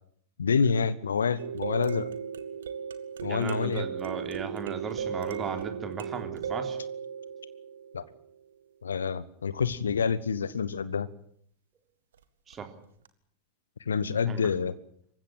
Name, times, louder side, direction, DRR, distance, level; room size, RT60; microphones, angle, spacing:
voice 1, 0.4-2.1 3.2-3.8 7.9-8.0 8.8-11.1 13.9-14.7, left 6 dB, 70° left, 18 dB, 1.1 m, -27 dB
sound 1, 1.4-8.3 12.5-12.6 13.1-13.2, right 7 dB, 65° right, 1.8 m, -36 dB
voice 2, 3.2-6.8 12.5-12.7 14.3-14.5, right 6 dB, 25° right, 6 dB, 3.6 m, -36 dB
26.5 x 15.5 x 9.0 m, 0.66 s
figure-of-eight pair, 90°, 0 cm